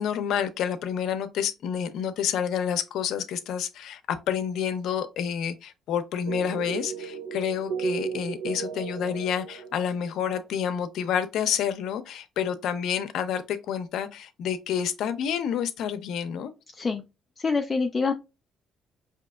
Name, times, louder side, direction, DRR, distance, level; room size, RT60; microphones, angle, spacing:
voice 1, 0.0-16.5, left 8 dB, 70° left, 0.6 m, -29 dB
sound 1, 6.3-10.3, right 6 dB, 80° right, 0.4 m, -34 dB
voice 2, 16.7-17.0 17.4-18.1, left 4 dB, 25° left, 0.3 m, -26 dB
5.0 x 2.8 x 2.3 m
cardioid pair, 145°, 0 cm